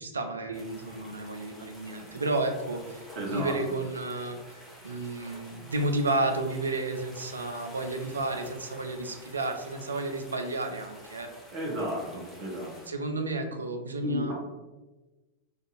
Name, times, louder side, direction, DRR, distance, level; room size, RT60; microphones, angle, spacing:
voice 1, 0.0-11.3 12.9-14.3, right 2 dB, 75° right, 5 dB, 0.4 m, -32 dB
sound 1, 0.5-12.9, equal, 5° left, 0.8 m, -50 dB
voice 2, 3.2-3.5 11.5-12.7 14.0-14.3, equal, 40° right, -2 dB, 0.8 m, -32 dB
2.5 x 2.4 x 3.9 m, 1.1 s
figure-of-eight pair, 90°, 0 cm